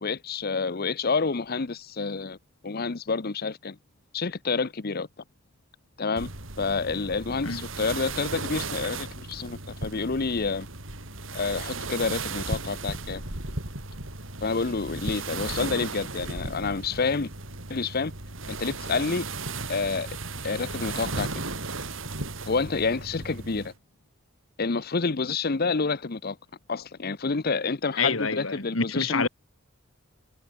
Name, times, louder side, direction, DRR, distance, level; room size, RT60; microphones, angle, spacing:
voice 1, 0.0-2.4 2.6-3.8 4.1-5.1 6.0-6.3 6.6-10.7 11.3-13.2 14.4-17.3 17.7-18.1 18.5-19.3 19.7-20.1 20.4-21.3 22.5-23.7 24.6-26.4 26.7-29.3, left 4 dB, 50° left, 0.8 m, -28 dB
sound 1, 6.2-23.7, right 3 dB, 70° right, 5.0 m, -36 dB
voice 2, 28.0-29.3, left 4 dB, 75° left, 3.1 m, -27 dB
head